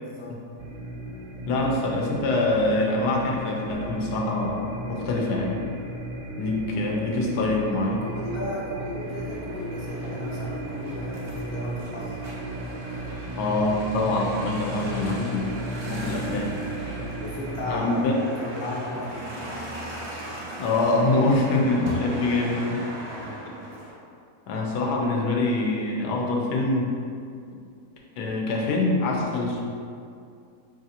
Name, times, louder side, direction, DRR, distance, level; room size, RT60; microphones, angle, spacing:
voice 1, 0.0-0.4 8.0-12.2 14.8-15.3 17.1-19.2 23.0-23.4 29.3-29.6, left 1 dB, 50° left, -7 dB, 0.9 m, -35 dB
sound 1, 0.6-18.0, right 1 dB, 70° right, 0.8 m, -35 dB
voice 2, 1.5-5.6 6.4-8.0 13.4-15.5 15.8-16.5 16.8-17.0 17.7-18.2 20.6-22.8 23.5-23.6 24.5-26.9 28.2-29.7, left 2 dB, 85° left, -1 dB, 1.2 m, -25 dB
sound 2, 9.0-23.9, right 1 dB, 30° right, 0.5 m, -39 dB
5.3 x 2.5 x 2.7 m, 2.4 s
omnidirectional pair, 1.7 m